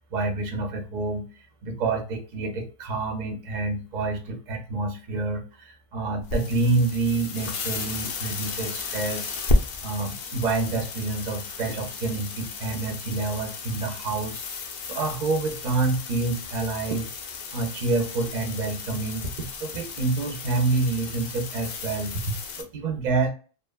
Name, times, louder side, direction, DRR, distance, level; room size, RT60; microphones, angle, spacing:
voice 1, 0.1-1.3 1.6-9.4 9.8-14.4 14.9-17.1 17.5-19.3 19.6-23.3, right 3 dB, 55° right, 4 dB, 0.6 m, -28 dB
sound 1, 6.2-22.6, left 3 dB, 60° left, 0.7 m, -33 dB
2.8 x 2.1 x 2.2 m, 0.37 s
omnidirectional pair, 1.0 m